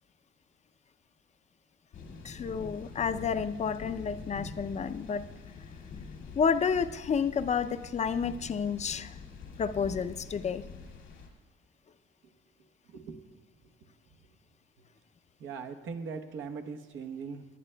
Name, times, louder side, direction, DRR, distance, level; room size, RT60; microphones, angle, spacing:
sound 1, 1.9-11.3, left 5 dB, 90° left, 2.1 m, -45 dB
voice 1, 2.2-5.3 6.4-9.1 9.6-10.6, left 6 dB, 35° left, 12 dB, 0.5 m, -30 dB
voice 2, 12.9-13.2 15.4-17.5, right 5 dB, 80° right, 5 dB, 1.0 m, -40 dB
19.0 x 11.0 x 2.2 m, 1.2 s
cardioid pair, 90°, 20 cm